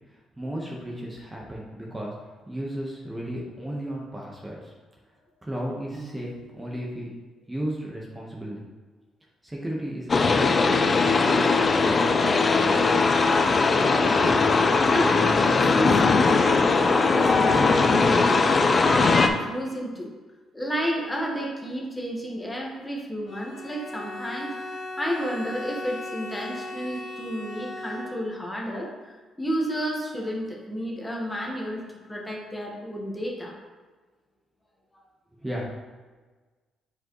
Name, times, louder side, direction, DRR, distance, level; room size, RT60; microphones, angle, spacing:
voice 1, 0.4-2.1 2.5-4.7 5.4-7.1 7.5-8.6 9.4-13.3 35.4-35.7, right 1 dB, 15° right, -3 dB, 1.3 m, -34 dB
Piano, 5.9-6.9, right 3 dB, 35° right, 1.6 m, -45 dB
sound 1, 10.1-19.3, left 4 dB, 35° left, 0.6 m, -20 dB
voice 2, 14.2-14.5 14.8-18.5 18.8-20.1 20.5-28.9 29.4-31.8 32.1-33.6, equal, 15° left, -2 dB, 1.5 m, -31 dB
Bowed string instrument, 23.3-28.5, left 2 dB, 65° left, 1.0 m, -37 dB
7.6 x 4.9 x 3.2 m, 1.3 s
cardioid pair, 90°, 0 cm